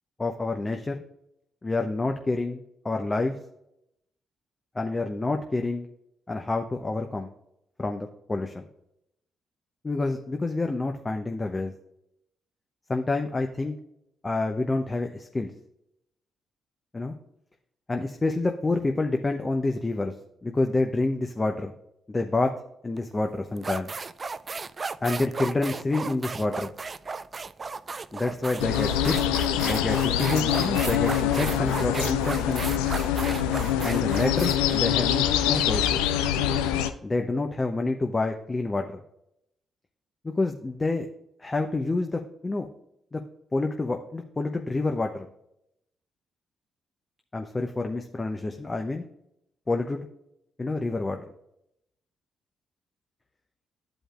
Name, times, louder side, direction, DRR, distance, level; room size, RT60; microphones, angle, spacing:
voice 1, 0.2-1.0 1.6-3.4 4.7-5.9 6.3-7.3 7.8-8.7 9.8-11.7 12.9-13.7 14.2-15.5 16.9-17.1 17.9-20.1 20.4-21.7 22.1-22.5 22.8-23.9 25.0-26.7 28.1-29.2 29.6-32.6 33.8-36.1 37.0-39.0 40.2-41.1 41.4-42.7 43.1-43.2 43.5-45.3 47.3-49.0 49.7-50.1 50.6-51.2, left 2 dB, 30° left, 4 dB, 0.8 m, -28 dB
sound 1, 23.0-23.1 23.6-35.9, right 4 dB, 40° right, 0.4 m, -35 dB
sound 2, 28.6-36.9, left 10 dB, 85° left, 0.4 m, -25 dB
11.5 x 5.1 x 2.5 m, 0.79 s
hypercardioid pair, 45°, 0 cm